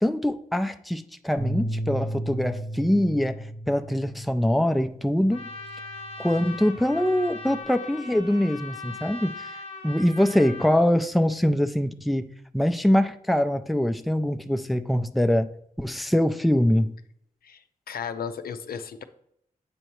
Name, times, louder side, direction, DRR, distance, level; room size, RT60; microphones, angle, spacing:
voice 1, 0.0-5.4 6.2-9.5 9.8-15.5 15.8-16.9, left 1 dB, ahead, 0.4 m, -23 dB
sound 1, 1.4-7.6, right 1 dB, 55° right, 1.1 m, -35 dB
Trumpet, 5.3-10.8, left 3 dB, 40° left, 0.8 m, -40 dB
voice 2, 17.4-19.0, left 7 dB, 90° left, 0.5 m, -35 dB
7.8 x 5.5 x 3.1 m
wide cardioid pair, 110°, 15 cm